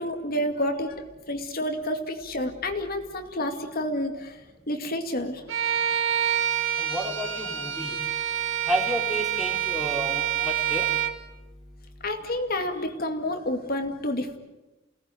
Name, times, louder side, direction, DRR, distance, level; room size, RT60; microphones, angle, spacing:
voice 1, 0.0-4.4 4.7-5.4 12.0-14.4, left 1 dB, 45° left, 5 dB, 2.3 m, -29 dB
Bowed string instrument, 5.5-11.2, right 10 dB, 70° right, 1.8 m, -27 dB
voice 2, 6.8-8.0 8.7-10.9, right 1 dB, ahead, -3 dB, 3.7 m, -31 dB
29.5 x 18.5 x 9.2 m, 1.1 s
head